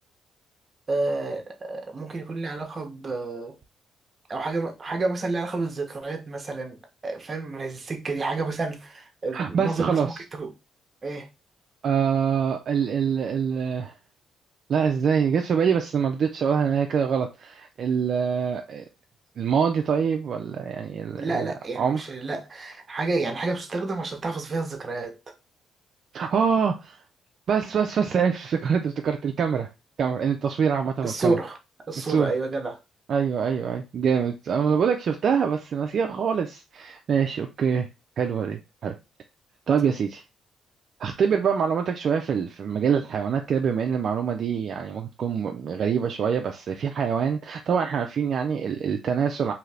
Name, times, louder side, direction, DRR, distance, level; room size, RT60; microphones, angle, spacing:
voice 1, 0.9-3.5 4.3-10.5 11.0-11.3 21.2-25.2 31.0-31.6 31.9-32.8, right 3 dB, 35° right, 0.8 m, -30 dB
voice 2, 9.3-10.2 11.8-13.9 14.7-18.8 19.4-22.0 26.1-27.0 27.5-29.7 30.0-31.4 32.0-32.3 33.1-37.9 38.2-38.9 39.7-40.2 41.0-49.5, right 6 dB, 60° right, 0.4 m, -25 dB
2.7 x 2.5 x 3.2 m
cardioid pair, 90°, 0 cm